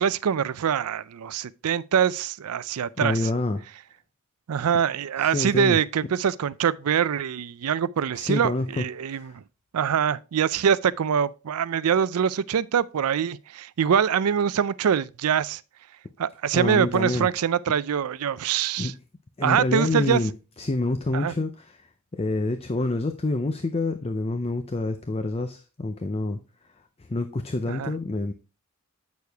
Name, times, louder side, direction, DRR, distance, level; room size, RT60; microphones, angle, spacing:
voice 1, 0.0-3.2 4.5-9.4 9.7-15.6 16.2-18.9 19.4-20.2 21.1-21.3 27.7-27.9, right 8 dB, 80° right, 0.4 m, -24 dB
voice 2, 3.0-3.6 5.2-5.8 8.1-9.3 16.5-17.3 18.8-18.9 19.4-20.3 20.6-26.4 27.1-28.3, left 2 dB, 25° left, 0.5 m, -27 dB
8.3 x 6.6 x 3.4 m
head